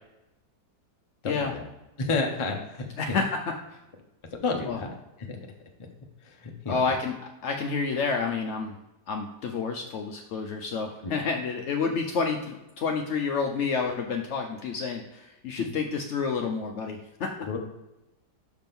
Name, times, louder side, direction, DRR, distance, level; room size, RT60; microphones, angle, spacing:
voice 1, 1.2-1.6 2.0-3.2 4.3-4.9 5.2-5.4 5.8-5.9 6.2-6.9 11.0-11.1 15.6-15.7 17.4-17.6, left 3 dB, 40° left, 2 dB, 0.4 m, -31 dB
voice 2, 3.0-3.3 3.7-3.8 4.7-4.8 6.7-7.1 7.4-8.8 9.1-17.3, left 5 dB, 75° left, 3 dB, 0.6 m, -29 dB
5.9 x 3.5 x 5.9 m, 0.94 s
omnidirectional pair, 1.9 m